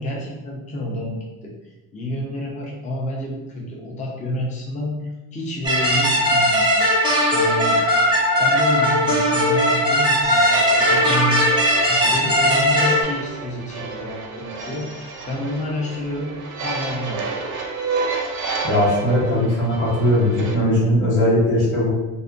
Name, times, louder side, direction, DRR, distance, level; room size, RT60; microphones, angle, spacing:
voice 1, 0.0-7.8 8.4-11.4 11.9-17.3, left 1 dB, 15° left, -2 dB, 0.6 m, -29 dB
sound 1, 5.6-13.0, equal, 10° right, 0.9 m, -18 dB
sound 2, 10.2-20.5, right 4 dB, 45° right, 0.6 m, -30 dB
voice 2, 18.6-21.9, left 1 dB, 70° left, -7 dB, 1.3 m, -19 dB
2.6 x 2.4 x 2.4 m, 1.0 s
hypercardioid pair, 65°, 46 cm